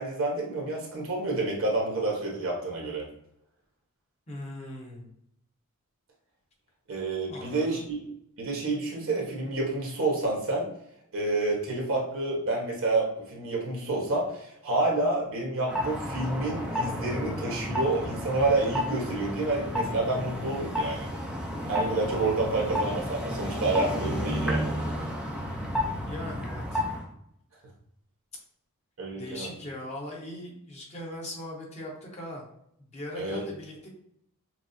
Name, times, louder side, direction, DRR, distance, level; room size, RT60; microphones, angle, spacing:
voice 1, 0.0-3.1 6.9-8.0 8.4-10.7 11.1-21.1 21.7-24.7 29.0-29.5 33.1-33.4, right 2 dB, 60° right, -2 dB, 1.2 m, -29 dB
voice 2, 4.3-5.1 7.3-7.8 26.0-26.8 29.1-32.4 32.9-33.9, left 1 dB, 30° left, -2 dB, 1.0 m, -39 dB
sound 1, 15.7-27.1, left 1 dB, 5° right, 0.5 m, -32 dB
5.9 x 2.0 x 2.6 m, 0.74 s
head